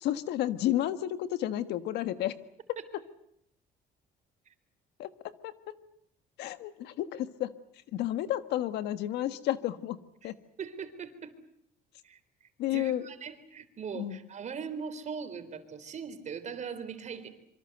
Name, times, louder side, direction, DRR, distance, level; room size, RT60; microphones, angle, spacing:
voice 1, 0.0-2.3 5.0-5.1 5.4-5.7 6.4-7.5 7.9-10.0 10.2-10.3 12.6-13.0 13.9-14.2, left 13 dB, 80° left, 12 dB, 1.5 m, -31 dB
voice 2, 10.6-11.3 12.0-17.3, right 6 dB, 45° right, 10 dB, 3.9 m, -40 dB
26.0 x 24.5 x 8.0 m, 0.74 s
cardioid pair, 110°, 17 cm